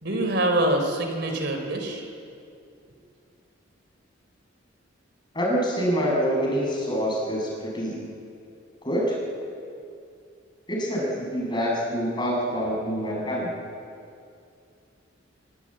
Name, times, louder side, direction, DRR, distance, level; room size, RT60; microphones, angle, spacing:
voice 1, 0.0-2.0, right 1 dB, 55° right, 4 dB, 3.6 m, -25 dB
voice 2, 5.3-8.1 8.8-9.2 10.7-13.6, equal, 20° left, -2 dB, 7.0 m, -26 dB
25.5 x 23.0 x 8.8 m, 2.5 s
head